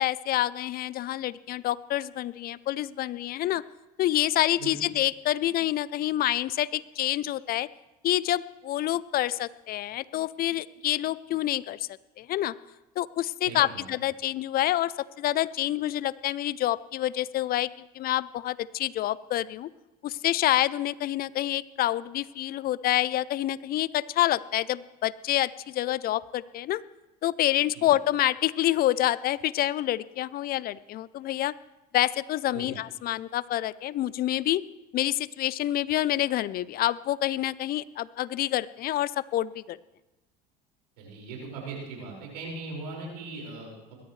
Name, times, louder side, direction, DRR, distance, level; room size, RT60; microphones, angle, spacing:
voice 1, 0.0-3.6 4.0-7.7 8.0-11.9 12.2-12.5 13.0-19.7 20.0-26.8 27.2-31.5 31.9-34.6 34.9-39.8, left 14 dB, 45° left, 20 dB, 0.5 m, -27 dB
voice 2, 13.4-13.8 27.7-27.9 32.5-32.7 41.0-44.0, right 3 dB, 85° right, -1 dB, 5.3 m, -39 dB
21.5 x 13.0 x 3.2 m, 1.1 s
hypercardioid pair, 75°, 21 cm